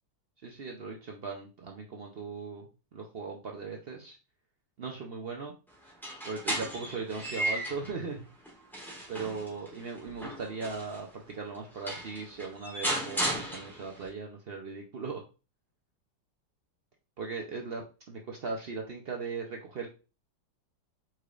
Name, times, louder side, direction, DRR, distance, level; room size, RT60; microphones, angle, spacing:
voice 1, 0.4-4.2 4.8-5.5 6.2-8.3 9.1-15.2 17.2-19.9, right 4 dB, 90° right, 1 dB, 0.5 m, -38 dB
sound 1, 5.9-7.9 8.4-11.0 11.5-11.6 11.9-14.1, right 1 dB, ahead, 1.5 m, -35 dB
4.9 x 4.4 x 2.4 m, 0.32 s
omnidirectional pair, 2.0 m